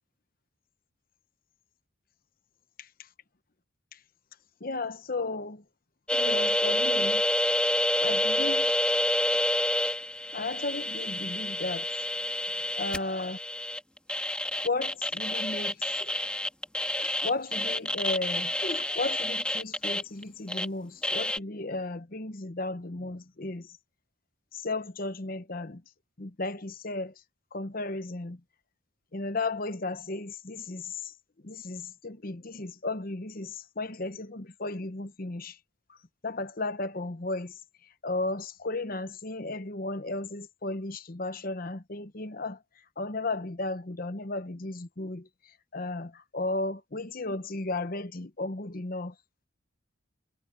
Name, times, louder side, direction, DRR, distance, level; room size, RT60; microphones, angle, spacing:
voice 1, 4.6-5.6 6.1-7.2 8.0-8.8 10.3-11.9 12.8-13.4 14.6-16.2 17.0-23.8 24.5-25.8 26.2-27.1 27.5-28.4 29.1-31.1 31.4-35.6 36.2-37.6 38.0-42.6 43.0-45.3 45.7-49.1, left 2 dB, 40° left, 1.0 m, -34 dB
sound 1, 6.1-20.7 21.0-21.4, left 1 dB, 5° left, 2.1 m, -28 dB
head